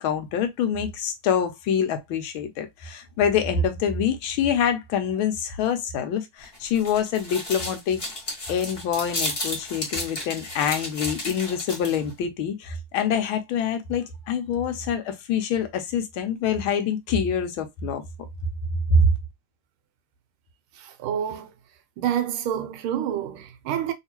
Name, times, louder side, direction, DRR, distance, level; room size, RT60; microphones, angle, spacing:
voice 1, 0.0-8.0 8.5-18.0 18.9-19.1, left 6 dB, 80° left, 1.5 m, -25 dB
sound 1, 6.4-12.1, left 2 dB, 30° left, 1.3 m, -33 dB
voice 2, 20.8-21.5 22.0-23.9, right 9 dB, 85° right, 1.5 m, -28 dB
3.5 x 2.8 x 2.9 m
omnidirectional pair, 2.3 m